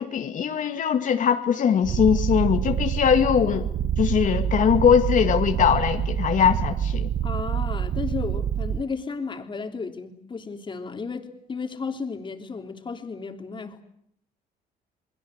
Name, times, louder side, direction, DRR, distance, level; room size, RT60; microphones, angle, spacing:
voice 1, 0.0-3.7 4.0-7.1, left 8 dB, 50° left, 6 dB, 2.2 m, -21 dB
Purr, 1.8-8.8, right 9 dB, 50° right, 1.0 m, -26 dB
voice 2, 7.2-13.8, left 5 dB, 30° left, 5 dB, 3.3 m, -33 dB
28.5 x 21.0 x 8.1 m, 0.68 s
cardioid pair, 110°, 17 cm